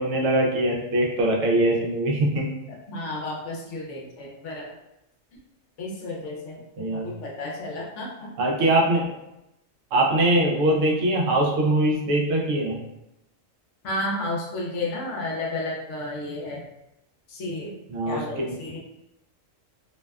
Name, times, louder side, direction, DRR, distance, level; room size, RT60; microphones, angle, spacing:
voice 1, 0.0-2.5 6.8-7.0 8.4-9.1 9.9-12.8 17.9-18.6, right 1 dB, 75° right, -1 dB, 0.9 m, -22 dB
voice 2, 2.7-4.7 5.8-6.6 6.9-8.3 8.6-8.7 13.8-16.7 17.3-17.7 18.1-18.8, left 2 dB, 70° left, -2 dB, 0.9 m, -32 dB
2.6 x 2.1 x 2.2 m, 0.89 s
omnidirectional pair, 1.3 m